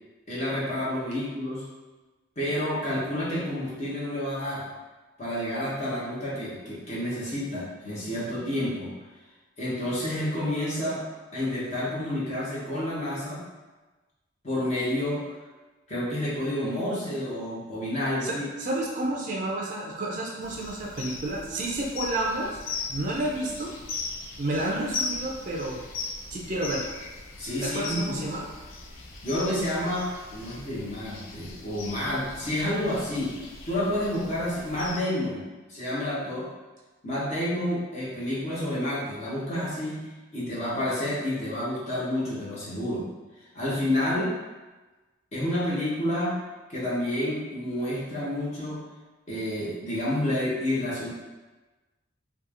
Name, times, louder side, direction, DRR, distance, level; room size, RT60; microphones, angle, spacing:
voice 1, 0.3-1.7 2.4-4.7 5.2-8.9 9.6-11.0 11.3-13.4 14.4-15.2 15.9-18.4 27.4-28.2 29.2-33.4 33.6-36.5 37.0-40.1 40.3-43.0 43.4-44.3 45.3-46.3 46.7-48.8 49.3-51.1, left 1 dB, 35° left, -8 dB, 0.6 m, -29 dB
voice 2, 18.2-22.6 22.9-23.7 24.4-25.8 26.3-26.9 27.6-28.5, right 1 dB, 40° right, -3 dB, 0.3 m, -30 dB
sound 1, 20.4-35.0, left 3 dB, 75° left, 0.4 m, -39 dB
2.8 x 2.3 x 2.5 m, 1.2 s
head